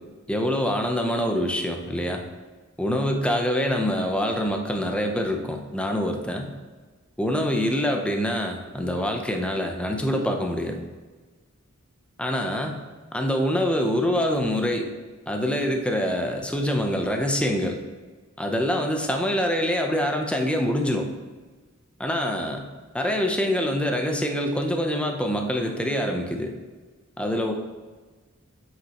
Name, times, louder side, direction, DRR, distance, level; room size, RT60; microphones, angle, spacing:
voice 1, 0.3-2.2 2.8-6.5 7.2-10.8 12.2-12.8 13.1-14.9 15.3-17.8 18.4-21.1 22.0-22.6 22.9-26.5 27.2-27.5, equal, 5° left, 3 dB, 0.7 m, -25 dB
8.1 x 5.8 x 3.0 m, 1.3 s
head